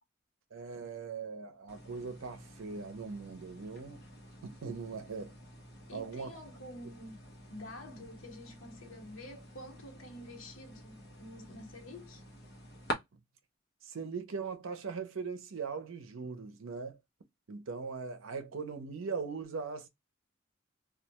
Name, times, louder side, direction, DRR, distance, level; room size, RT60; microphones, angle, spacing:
voice 1, 0.5-4.0 4.4-5.3 5.9-6.3 13.8-17.0 17.5-19.9, right 5 dB, 80° right, 0.6 m, -40 dB
sound 1, 1.7-12.9, equal, 50° left, 0.8 m, -47 dB
voice 2, 5.9-7.2 7.5-12.2, left 1 dB, 80° left, 1.0 m, -48 dB
2.3 x 2.2 x 2.7 m
head